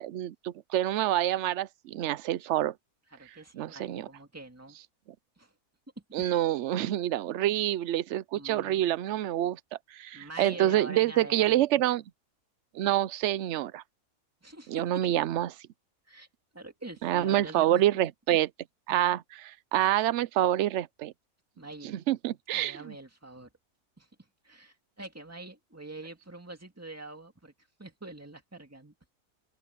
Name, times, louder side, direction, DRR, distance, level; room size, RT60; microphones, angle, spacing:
voice 1, 0.0-2.7 3.5-4.1 6.1-9.6 9.9-12.0 12.7-13.8 14.7-15.5 17.0-18.5 18.9-21.1 21.8-22.9, right 13 dB, 65° right, 0.8 m, -27 dB
voice 2, 3.1-4.8 5.4-5.5 6.2-6.3 8.3-8.8 10.1-11.6 14.4-15.2 16.1-16.3 16.5-17.8 19.8-19.9 21.6-22.0 22.5-23.5 24.0-24.1 24.4-27.5 27.8-28.9, right 2 dB, 10° right, 2.2 m, -45 dB
open air
omnidirectional pair, 1.5 m